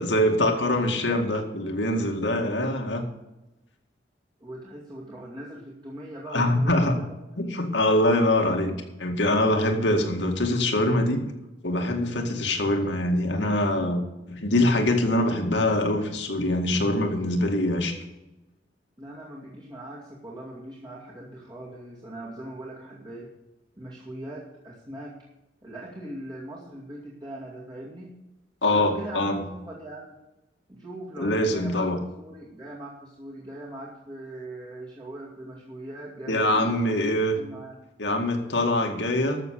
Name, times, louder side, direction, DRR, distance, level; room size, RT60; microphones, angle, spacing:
voice 1, 0.0-3.0 6.3-7.0 7.4-8.7 9.0-11.2 11.6-14.0 14.3-18.0 28.6-29.4 31.2-32.0 36.3-37.4 38.0-39.4, left 1 dB, 80° left, 3 dB, 2.1 m, -24 dB
voice 2, 4.4-7.1 19.0-23.3 23.8-25.2 25.6-28.1 28.7-30.2 30.7-37.0 37.4-37.8, right 1 dB, 25° right, -5 dB, 2.4 m, -40 dB
13.5 x 7.0 x 6.6 m, 0.99 s
head